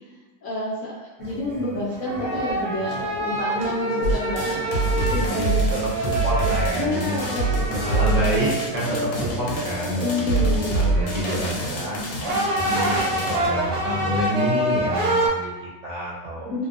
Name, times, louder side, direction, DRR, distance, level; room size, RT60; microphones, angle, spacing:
voice 1, 0.4-4.7 5.0-5.7 6.7-7.4 7.8-8.2 10.0-10.9 16.5-16.7, left 2 dB, 65° left, -6 dB, 0.8 m, -29 dB
sound 1, 1.2-15.3, right 1 dB, 80° right, 1.1 m, -27 dB
sound 2, 4.0-13.5, right 2 dB, 90° left, 1.1 m, -26 dB
voice 2, 5.0-7.2 7.8-16.7, right 1 dB, 60° right, -7 dB, 1.0 m, -28 dB
2.7 x 2.1 x 2.5 m, 1.2 s
omnidirectional pair, 1.6 m